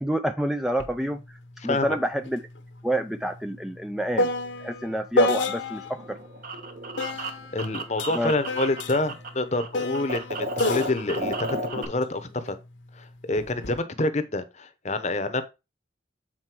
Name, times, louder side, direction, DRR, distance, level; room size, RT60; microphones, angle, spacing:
voice 1, 0.0-1.4 1.6-2.4 2.8-4.3 4.6-6.2 8.1-8.3, equal, ahead, 0.4 m, -28 dB
sound 1, 0.8-1.0 1.3-6.0 7.0-12.5 13.4-13.8, left 2 dB, 70° left, 1.0 m, -30 dB
sound 2, 5.9-9.3 9.5-11.9, right 1 dB, 45° right, 1.0 m, -33 dB
voice 2, 7.2-12.6 12.9-15.4, left 2 dB, 35° left, 0.9 m, -27 dB
7.7 x 4.3 x 4.5 m
head